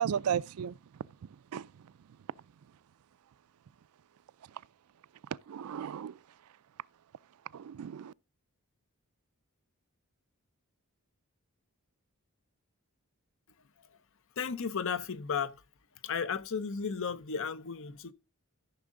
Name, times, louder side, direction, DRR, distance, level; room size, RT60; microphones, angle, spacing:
voice 1, 0.0-2.2 4.4-4.6 5.3-6.2 7.5-8.1, right 8 dB, 75° right, 0.4 m, -36 dB
voice 2, 14.4-15.6 16.0-18.1, left 6 dB, 60° left, 0.7 m, -34 dB
13.5 x 6.3 x 3.7 m
head